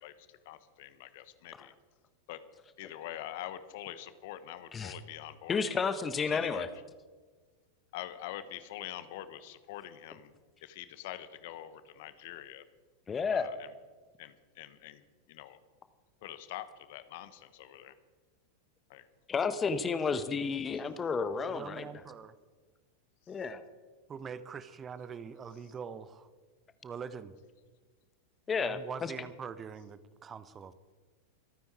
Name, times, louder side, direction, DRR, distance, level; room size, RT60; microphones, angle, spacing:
voice 1, 0.0-1.7 2.3-2.4 2.8-5.6 6.3-6.6 7.9-10.3 10.6-12.6 13.3-13.7 14.2-15.0 15.3-15.6 16.2-17.9 18.9-19.1 23.3-23.4, left 13 dB, 50° left, 13 dB, 1.1 m, -45 dB
voice 2, 5.5-6.7 13.1-13.5 19.3-21.9 23.3-23.6 28.5-29.1, left 5 dB, 20° left, 12 dB, 1.1 m, -31 dB
voice 3, 21.5-22.4 24.1-26.3 26.8-27.3 28.6-30.7, right 6 dB, 20° right, 15 dB, 0.8 m, -43 dB
25.5 x 9.4 x 4.7 m, 1.4 s
figure-of-eight pair, 90°, 0 cm